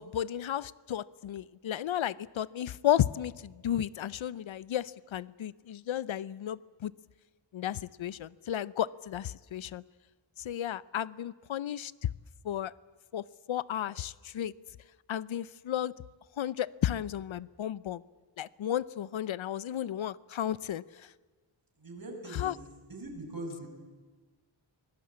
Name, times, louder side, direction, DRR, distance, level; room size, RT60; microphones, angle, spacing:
voice 1, 0.0-6.9 7.5-9.8 10.4-11.9 12.4-12.7 13.1-14.5 15.1-15.9 16.4-18.0 18.4-21.1 22.3-22.5, left 11 dB, 75° left, 20 dB, 0.6 m, -33 dB
voice 2, 21.8-22.6 22.9-23.7, right 1 dB, 45° right, 3 dB, 5.9 m, -41 dB
24.5 x 18.5 x 8.6 m, 1.3 s
wide cardioid pair, 120°, 48 cm